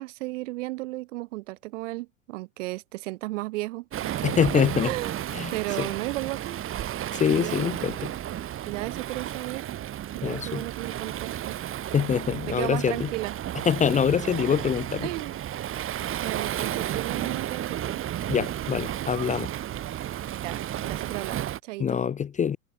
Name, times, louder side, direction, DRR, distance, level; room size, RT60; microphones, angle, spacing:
voice 1, 0.0-4.2 4.5-6.6 7.3-7.7 8.6-9.7 10.1-11.6 12.4-13.3 14.6-14.7 15.0-15.4 16.2-18.0 20.4-22.0, right 20 dB, 60° right, 3.1 m, -34 dB
Waves surf, 3.9-21.6, right 11 dB, 30° right, 2.0 m, -33 dB
voice 2, 4.2-4.9 5.3-5.5 5.8-5.9 7.1-8.1 10.2-10.6 11.9-13.1 13.7-15.1 18.3-19.5 21.8-22.6, left 7 dB, 15° left, 0.8 m, -25 dB
figure-of-eight pair, 85°, 42 cm